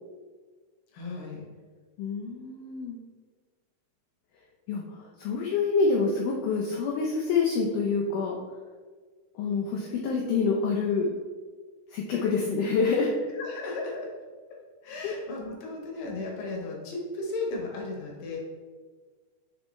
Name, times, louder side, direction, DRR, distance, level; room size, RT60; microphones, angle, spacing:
voice 1, 0.9-1.4 13.4-14.1 14.5-14.6 14.8-18.4, left 3 dB, 70° left, -1 dB, 2.3 m, -35 dB
voice 2, 2.0-3.0 4.7-8.4 9.4-11.1 11.9-13.1 15.0-15.1, left 4 dB, 90° left, -1 dB, 1.8 m, -27 dB
9.4 x 3.3 x 3.0 m, 1.5 s
omnidirectional pair, 4.5 m